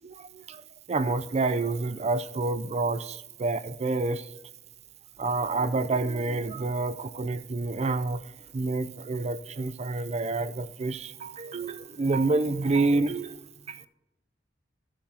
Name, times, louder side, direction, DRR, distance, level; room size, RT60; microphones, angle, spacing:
voice 1, 0.0-4.3 5.2-8.2 8.5-13.9, right 3 dB, 35° right, 0.5 m, -28 dB
15.0 x 7.1 x 2.9 m
head